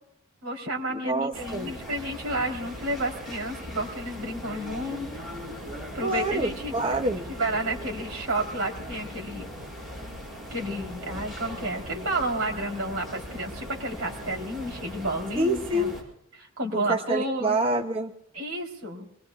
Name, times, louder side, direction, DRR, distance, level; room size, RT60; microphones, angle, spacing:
voice 1, 0.4-5.1 5.9-6.7 7.3-9.5 10.5-15.9 16.4-17.6 18.3-19.1, right 1 dB, 75° right, 2 dB, 3.9 m, -31 dB
voice 2, 0.9-1.7 6.0-7.3 15.4-16.0 16.7-18.1, right 1 dB, 25° right, 4 dB, 0.8 m, -27 dB
sound 1, 1.3-16.0, equal, ahead, 7.2 m, -39 dB
26.5 x 21.5 x 2.5 m, 0.76 s
head